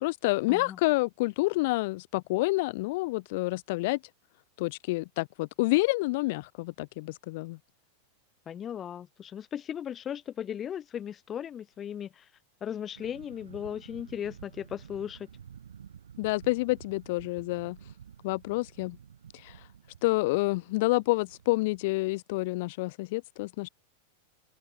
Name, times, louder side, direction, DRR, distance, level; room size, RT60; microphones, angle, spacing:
voice 1, 0.0-4.0 4.6-7.6 16.2-17.8 18.2-19.0 19.4-19.5 20.0-23.7, left 22 dB, 50° left, 1.3 m, -28 dB
voice 2, 8.5-12.2 12.6-15.3, left 9 dB, 25° left, 1.2 m, -37 dB
sound 1, 12.9-21.9, right 8 dB, 65° right, 4.8 m, -51 dB
figure-of-eight pair, 90°, 0 cm